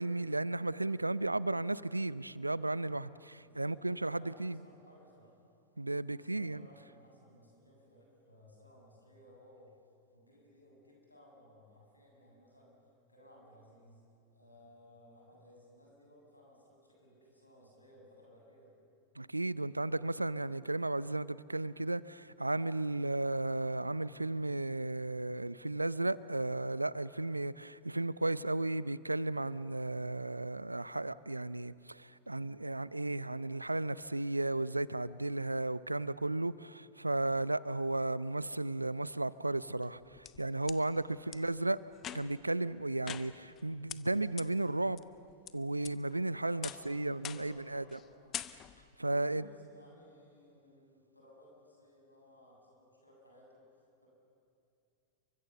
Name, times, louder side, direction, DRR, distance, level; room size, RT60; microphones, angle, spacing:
voice 1, 0.0-4.6 5.8-6.6 19.2-41.8 42.1-45.0 45.5-48.0 49.0-49.4, right 2 dB, 85° right, 0.5 m, -34 dB
voice 2, 3.4-5.3 6.1-9.8 10.1-12.8 13.1-14.0 14.3-18.7 41.2-41.3 46.3-48.4 49.1-53.7 54.0-54.1, left 1 dB, 85° left, 7.8 m, -60 dB
sound 1, 39.8-40.8 41.3-41.4 42.0-42.5 43.1-43.6 43.9-44.0 44.4-44.5 45.0-45.5 45.8-46.2 46.6-46.9 47.2-47.6 47.9-48.1 48.3-48.9, left 11 dB, 30° left, 0.8 m, -44 dB
29.5 x 24.0 x 7.1 m
figure-of-eight pair, 90°, 0 cm